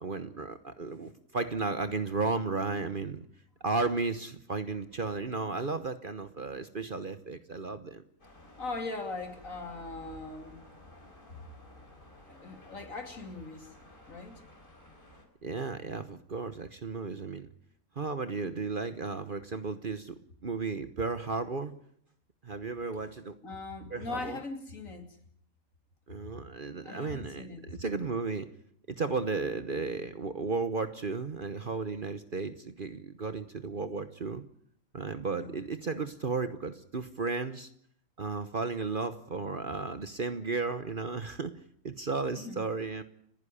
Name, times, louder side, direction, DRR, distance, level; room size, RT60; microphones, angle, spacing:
voice 1, 0.0-3.3 3.6-8.0 15.4-17.5 18.0-21.7 22.4-23.4 23.9-24.4 26.1-28.5 28.9-34.4 34.9-37.7 38.2-41.6 41.8-43.0, right 4 dB, 40° right, 11 dB, 1.1 m, -34 dB
sound 1, 8.2-15.3, left 2 dB, 35° left, 4.7 m, -53 dB
voice 2, 8.6-10.5 12.3-13.7 14.1-14.4 23.4-25.1 26.8-27.7 35.3-35.6 42.3-42.6, left 3 dB, 60° left, 6 dB, 3.1 m, -40 dB
30.0 x 10.5 x 9.9 m, 0.68 s
omnidirectional pair, 1.5 m